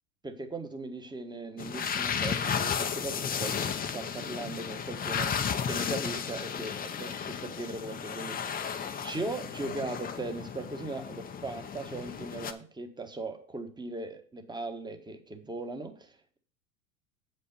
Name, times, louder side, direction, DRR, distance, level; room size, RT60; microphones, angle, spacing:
voice 1, 0.2-5.3 5.6-8.6 8.9-16.4, right 2 dB, 10° right, 7 dB, 1.4 m, -39 dB
sound 1, 1.6-12.5, left 7 dB, 20° left, 0.8 m, -34 dB
8.1 x 5.5 x 5.4 m, 0.44 s
hypercardioid pair, 95°, 41 cm